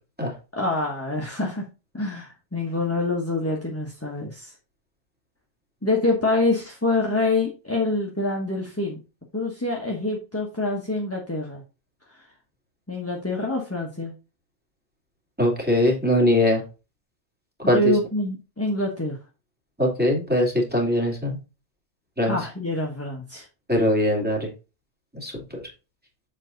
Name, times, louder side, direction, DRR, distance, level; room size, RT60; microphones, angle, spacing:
voice 1, 0.5-1.6 1.9-4.5 5.8-9.0 9.3-11.6 12.9-14.1 17.6-19.2 22.2-23.4, left 2 dB, 10° left, -1 dB, 1.2 m, -26 dB
voice 2, 15.4-16.6 17.6-17.9 19.8-21.4 22.2-22.4 23.7-24.5 25.2-25.6, left 1 dB, 5° right, -2 dB, 2.6 m, -21 dB
7.4 x 4.8 x 3.9 m, 0.31 s
omnidirectional pair, 1.3 m